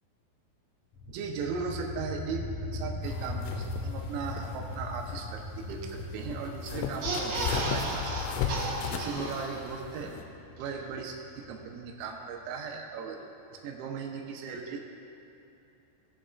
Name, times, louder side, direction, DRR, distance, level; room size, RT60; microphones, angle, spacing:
sound 1, 0.9-12.5, left 2 dB, 50° left, 2.1 m, -40 dB
voice 1, 1.1-10.1 10.6-14.8, right 5 dB, 85° right, 1 dB, 3.4 m, -38 dB
sound 2, 3.0-10.2, left 7 dB, 85° left, 3.0 m, -36 dB
sound 3, 6.9-9.9 10.2-10.3 10.6-10.7, right 2 dB, 65° right, 3.4 m, -34 dB
19.0 x 7.3 x 2.4 m, 2.9 s
omnidirectional pair, 6.0 m